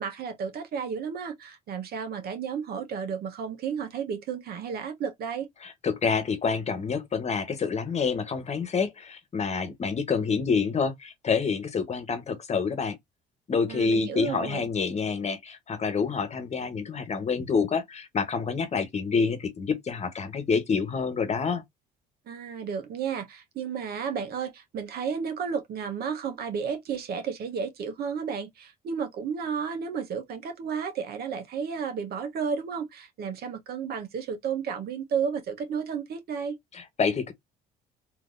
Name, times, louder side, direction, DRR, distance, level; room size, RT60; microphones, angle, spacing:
voice 1, 0.0-5.5 13.7-14.6 22.3-36.6, right 6 dB, 55° right, 1.0 m, -32 dB
voice 2, 5.6-13.0 13.5-21.6 36.7-37.3, left 5 dB, 35° left, 1.2 m, -27 dB
3.7 x 2.8 x 2.6 m
supercardioid pair, 80°, 19 cm